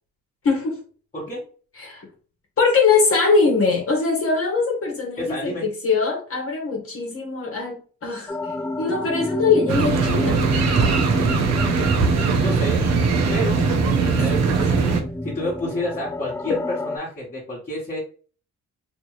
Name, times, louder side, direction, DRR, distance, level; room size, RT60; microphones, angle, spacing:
voice 1, 0.4-0.8 1.8-2.0 2.6-5.5 5.8-8.4 8.8-10.4, left 4 dB, 50° left, 0 dB, 1.3 m, -21 dB
voice 2, 1.1-1.4 5.2-5.7 12.4-12.9 13.3-15.0 15.2-18.0, left 1 dB, 25° left, -5 dB, 1.5 m, -30 dB
sound 1, 8.3-17.0, left 1 dB, 10° left, 0.3 m, -28 dB
sound 2, 9.7-15.0, right 6 dB, 60° right, 0.9 m, -21 dB
3.0 x 2.6 x 3.1 m, 0.39 s
cardioid pair, 90°, 30 cm